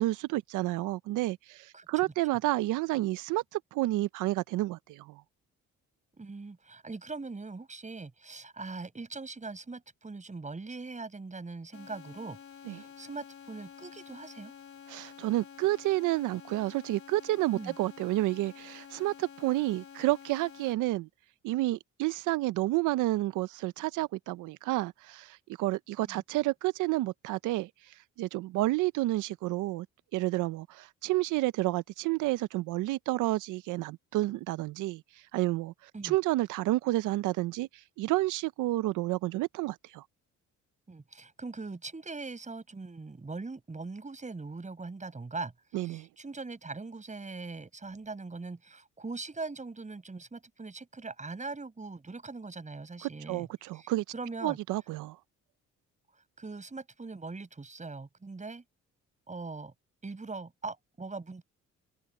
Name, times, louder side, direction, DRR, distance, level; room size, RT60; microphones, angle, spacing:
voice 1, 0.0-5.2 12.7-12.8 14.9-21.1 21.4-29.9 30.1-40.0 45.7-46.1 53.0-54.0 54.4-55.2, right 17 dB, 90° right, 0.6 m, -30 dB
voice 2, 1.7-2.1 6.1-12.4 12.7-14.5 17.5-17.7 26.0-26.2 35.9-36.2 40.9-53.5 53.7-53.9 54.1-54.6 56.4-58.6 59.3-59.7 60.0-61.4, right 3 dB, 25° right, 7.5 m, -41 dB
sound 1, 11.7-20.7, left 8 dB, 45° left, 3.2 m, -50 dB
open air
cardioid pair, 90°, 30 cm